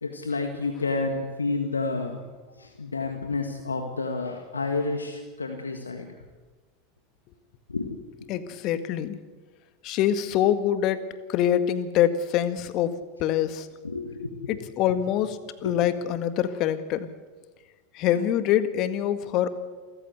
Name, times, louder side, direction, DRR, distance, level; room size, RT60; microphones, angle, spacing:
voice 1, 0.0-2.2 2.6-6.1 7.7-8.0 13.8-14.6 15.6-15.8, left 3 dB, 85° left, 5 dB, 1.7 m, -30 dB
voice 2, 8.3-9.2 9.8-13.7 14.5-17.1 17.9-19.5, left 10 dB, 50° left, 11 dB, 1.8 m, -25 dB
28.0 x 14.5 x 8.1 m, 1.3 s
figure-of-eight pair, 85°, 0 cm